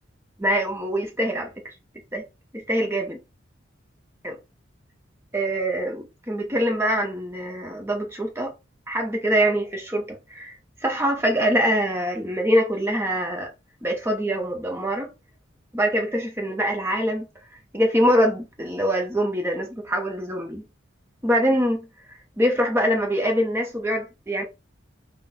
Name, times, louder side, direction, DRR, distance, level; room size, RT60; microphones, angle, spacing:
voice 1, 0.4-1.5 2.1-2.2 2.5-3.2 4.2-4.4 5.3-8.5 8.9-10.6 10.8-13.5 13.8-15.1 15.7-17.3 17.7-20.6 21.2-21.9 22.4-24.4, equal, 10° right, 0.8 m, -24 dB
4.1 x 2.2 x 4.1 m
head